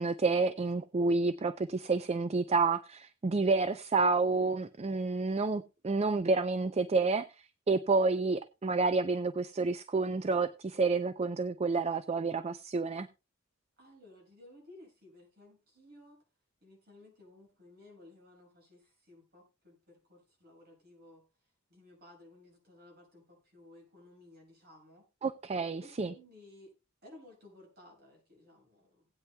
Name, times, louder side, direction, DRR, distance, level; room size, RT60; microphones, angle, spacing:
voice 1, 0.0-7.3 7.7-13.1 25.2-26.1, right 3 dB, 30° right, 0.4 m, -29 dB
voice 2, 13.8-16.2 16.6-21.2 21.7-25.1 25.8-26.7 27.0-29.1, left 1 dB, 50° right, 6.6 m, -57 dB
18.5 x 9.1 x 2.2 m
head